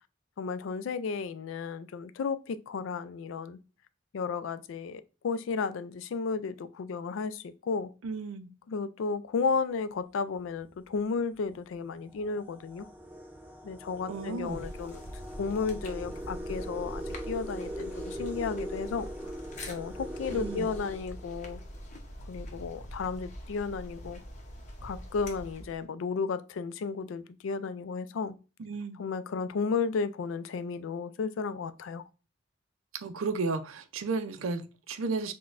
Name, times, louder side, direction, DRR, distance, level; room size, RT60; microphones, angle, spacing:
voice 1, 0.4-3.6 4.1-7.9 8.7-12.9 13.6-15.0 15.4-19.1 19.7-21.6 22.2-24.2 24.8-28.4 29.0-32.0, left 5 dB, 75° left, 0.3 m, -33 dB
voice 2, 8.0-8.5 14.1-14.6 20.3-20.7 28.6-29.0 32.9-35.3, right 4 dB, 80° right, 0.4 m, -33 dB
sound 1, 10.4-10.7 11.5-11.6 12.0-21.8, equal, 10° right, 0.4 m, -41 dB
sound 2, 14.4-25.8, equal, 35° left, 0.7 m, -44 dB
5.8 x 2.2 x 2.4 m
head